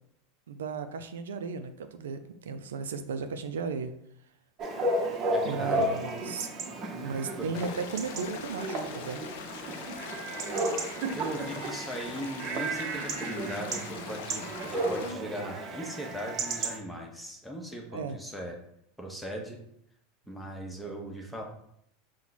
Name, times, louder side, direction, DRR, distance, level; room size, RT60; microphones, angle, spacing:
voice 1, 0.5-3.9 5.4-6.5 7.0-9.2 17.9-18.2, right 5 dB, 85° right, 9 dB, 0.3 m, -35 dB
Chatter / Bark / Livestock farm animals working animals, 4.6-16.8, right 2 dB, 40° right, 0.8 m, -33 dB
voice 2, 5.3-5.9 7.4-7.7 11.1-18.6 19.0-19.6 20.3-21.4, right 1 dB, ahead, 0 dB, 0.9 m, -39 dB
sound 1, 7.5-15.1, left 6 dB, 70° left, 0.5 m, -43 dB
4.4 x 2.1 x 4.1 m, 0.73 s
hypercardioid pair, 100°, 0 cm